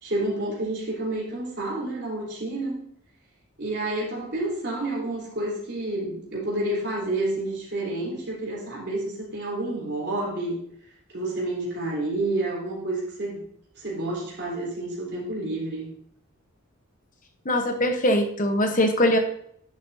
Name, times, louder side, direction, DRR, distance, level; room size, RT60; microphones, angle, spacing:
voice 1, 0.0-2.8 3.6-10.6 11.1-13.4 13.8-15.9, right 2 dB, 50° right, -3 dB, 3.6 m, -29 dB
voice 2, 17.4-19.2, left 1 dB, 40° left, 5 dB, 1.0 m, -22 dB
10.5 x 7.5 x 2.7 m, 0.67 s
head